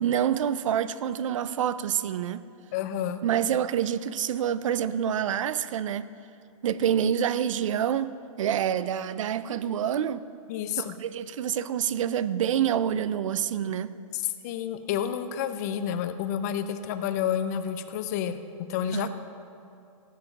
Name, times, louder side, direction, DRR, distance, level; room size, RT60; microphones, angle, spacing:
voice 1, 0.0-2.4 3.2-6.1 6.6-10.2 10.8-13.9 18.9-19.1, right 9 dB, 65° right, 0.5 m, -27 dB
voice 2, 2.7-3.2 10.5-10.9 14.1-19.1, left 9 dB, 30° left, 0.5 m, -30 dB
16.0 x 7.6 x 5.9 m
hypercardioid pair, 170°, 17 cm